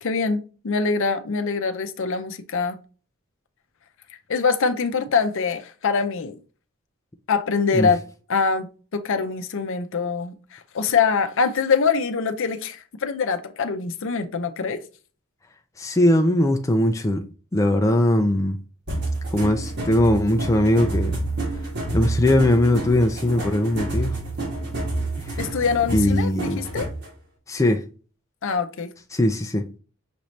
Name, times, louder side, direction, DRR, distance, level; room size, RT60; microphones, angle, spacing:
voice 1, 0.0-2.8 4.3-6.4 7.3-8.0 8.3-14.8 25.4-26.9 28.4-28.9, left 5 dB, 60° left, 0.6 m, -24 dB
voice 2, 15.8-17.2 17.5-18.6 19.3-21.2 21.9-24.2 25.2-25.4 25.9-26.6 27.5-27.9 29.1-29.7, left 1 dB, 15° left, 0.4 m, -20 dB
sound 1, 18.9-27.1, right 2 dB, 50° right, 1.8 m, -28 dB
5.9 x 2.7 x 3.1 m
head